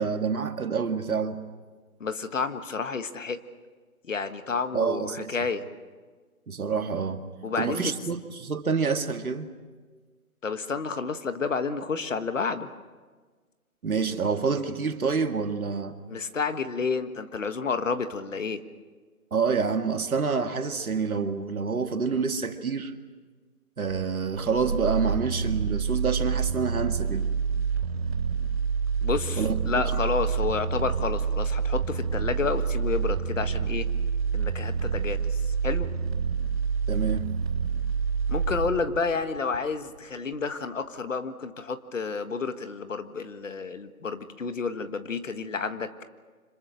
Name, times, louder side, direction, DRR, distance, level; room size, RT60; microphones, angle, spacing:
voice 1, 0.0-1.4 4.7-5.3 6.5-7.2 7.6-9.5 13.8-16.0 19.3-22.9 23.8-27.3 29.4-29.8 36.9-37.3, right 5 dB, 70° right, 7 dB, 2.1 m, -27 dB
voice 2, 2.0-3.4 4.1-5.7 7.4-7.9 10.4-12.7 16.1-18.6 29.0-33.9 34.3-35.2 35.6-35.9 38.3-45.9, left 4 dB, 55° left, 10 dB, 1.6 m, -30 dB
sound 1, 23.9-40.0 40.3-40.4, right 6 dB, 45° right, 7.2 m, -28 dB
28.5 x 26.0 x 6.3 m, 1.4 s
hypercardioid pair, 165°, 45 cm